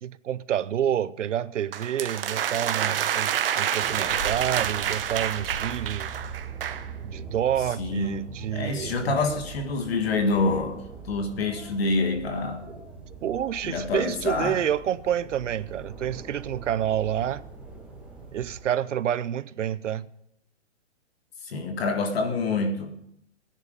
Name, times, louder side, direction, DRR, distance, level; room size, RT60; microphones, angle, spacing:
voice 1, 0.0-6.1 7.0-9.1 13.2-17.4 18.3-20.1, right 10 dB, 75° right, 0.7 m, -28 dB
sound 1, 1.7-6.9, right 10 dB, 50° right, 0.9 m, -28 dB
sound 2, 3.8-18.6, right 4 dB, 5° right, 2.0 m, -41 dB
voice 2, 7.8-8.2 8.5-12.6 13.6-14.6 21.4-22.9, left 3 dB, 55° left, 1.7 m, -27 dB
16.5 x 10.5 x 5.2 m
hypercardioid pair, 155°, 36 cm